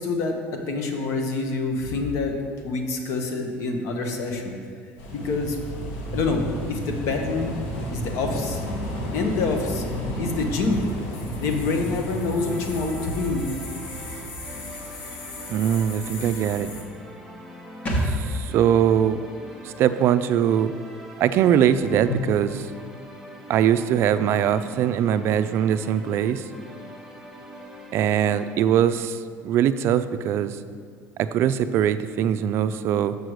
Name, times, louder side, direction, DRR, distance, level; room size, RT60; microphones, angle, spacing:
voice 1, 0.0-2.4 2.6-4.5 5.1-5.6 6.1-6.4 6.7-7.5 7.9-8.6 9.1-10.8 11.4-13.5 22.1-22.2, left 3 dB, 65° left, 3 dB, 1.0 m, -26 dB
sound 1, 5.0-16.8, equal, 90° left, 1.2 m, -33 dB
sound 2, 12.4-28.5, right 1 dB, ahead, 0.9 m, -43 dB
voice 2, 15.5-16.7 18.0-19.2 19.6-20.7 21.2-22.6 23.5-26.4 27.9-30.6 31.2-33.2, right 9 dB, 50° right, 12 dB, 0.3 m, -22 dB
sound 3, 17.9-21.4 21.6-21.7, equal, 30° left, 1.3 m, -31 dB
6.7 x 4.7 x 6.4 m, 2.1 s
cardioid pair, 140°, 5 cm